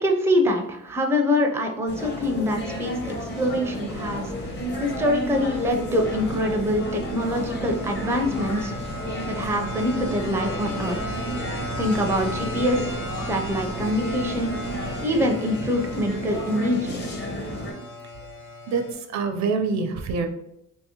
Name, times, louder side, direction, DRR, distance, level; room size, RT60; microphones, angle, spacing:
voice 1, 0.0-4.3 4.8-8.7 9.2-11.2 11.8-14.5 15.0-17.0, left 1 dB, 10° right, 3 dB, 0.4 m, -25 dB
sound 1, 1.9-17.7, equal, 35° left, 0.9 m, -33 dB
sound 2, 3.9-15.0, right 2 dB, 85° left, 0.8 m, -39 dB
sound 3, 3.9-18.9, equal, 65° left, 1.1 m, -37 dB
voice 2, 17.2-17.9 18.7-20.3, right 4 dB, 65° right, 6 dB, 0.5 m, -27 dB
3.0 x 2.7 x 2.8 m, 0.80 s
cardioid pair, 90°, 30 cm